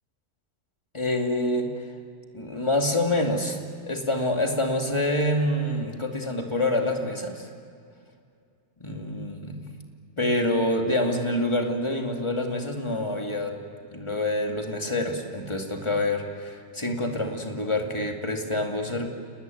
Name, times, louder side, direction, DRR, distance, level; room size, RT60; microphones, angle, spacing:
voice 1, 0.9-1.7 2.3-3.6 3.9-7.5 8.8-9.7 10.2-13.6 13.9-19.1, left 1 dB, 20° left, 2 dB, 2.5 m, -26 dB
29.5 x 19.5 x 9.3 m, 2.4 s
omnidirectional pair, 1.5 m